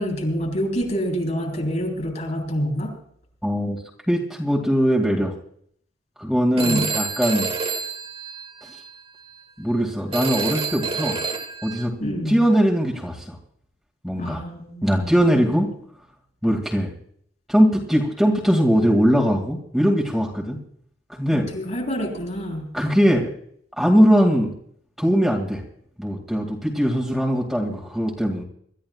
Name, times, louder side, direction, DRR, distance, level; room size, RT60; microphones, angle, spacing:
voice 1, 0.0-2.9 6.6-6.8 12.0-12.4 14.2-15.4 21.3-22.7, equal, 45° left, 3 dB, 4.8 m, -27 dB
voice 2, 3.4-3.8 4.1-5.3 6.2-7.5 9.6-11.2 11.6-11.9 12.3-13.4 14.0-14.4 14.8-15.7 16.4-16.9 17.5-20.6 21.1-21.5 22.7-23.3 23.8-24.5 25.0-25.6 26.0-28.4, equal, ahead, -2 dB, 2.2 m, -20 dB
Telephone, 6.6-8.9 10.1-11.8, right 5 dB, 30° right, 1.7 m, -28 dB
26.0 x 13.5 x 2.4 m, 0.63 s
head